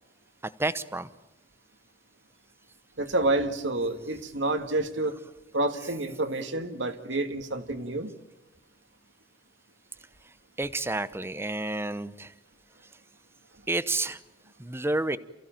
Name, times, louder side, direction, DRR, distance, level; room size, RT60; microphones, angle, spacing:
voice 1, 0.4-1.1 10.6-12.3 13.7-14.2 14.6-15.2, right 2 dB, 15° right, 14 dB, 0.8 m, -30 dB
voice 2, 3.0-5.1 5.5-8.1, right 2 dB, 75° right, 7 dB, 2.0 m, -28 dB
28.5 x 15.5 x 9.1 m, 1.0 s
head